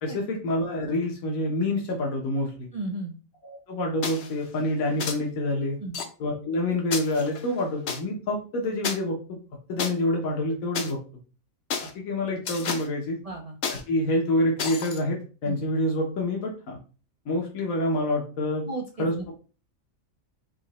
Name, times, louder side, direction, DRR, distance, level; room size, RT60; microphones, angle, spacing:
voice 1, 0.0-2.7 3.4-5.8 6.2-9.4 9.7-11.0 11.8-13.2 13.7-16.8 17.2-18.6 19.0-19.1, left 1 dB, 75° left, -1 dB, 1.4 m, -27 dB
voice 2, 2.7-3.1 5.8-6.0 13.2-13.6 15.4-15.6 18.6-19.3, right 2 dB, 75° right, 2 dB, 0.3 m, -34 dB
sound 1, 4.0-4.3 5.0-5.2 5.9-6.0 6.9-8.0 8.8-8.9 9.8-9.9 10.7-10.9 11.7-11.9 12.5-12.9 13.6-13.8 14.6-15.0, left 6 dB, 60° left, 1.0 m, -31 dB
4.4 x 2.8 x 4.1 m, 0.36 s
omnidirectional pair, 1.5 m